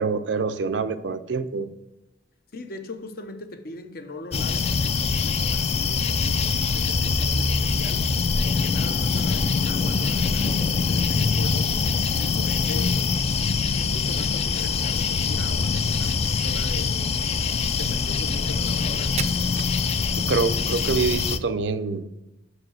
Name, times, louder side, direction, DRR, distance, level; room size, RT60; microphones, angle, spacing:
voice 1, 0.0-1.7 20.2-22.0, right 4 dB, 90° right, 0.5 m, -26 dB
voice 2, 2.5-11.7 12.2-13.2 13.8-17.0 17.7-19.2, left 3 dB, 55° left, 0.7 m, -39 dB
sound 1, 4.3-21.4, left 5 dB, 35° left, 0.4 m, -24 dB
sound 2, 7.3-16.0, right 1 dB, 20° left, 0.8 m, -44 dB
Crack, 15.9-20.4, right 8 dB, 40° right, 0.4 m, -40 dB
6.4 x 4.9 x 6.3 m
head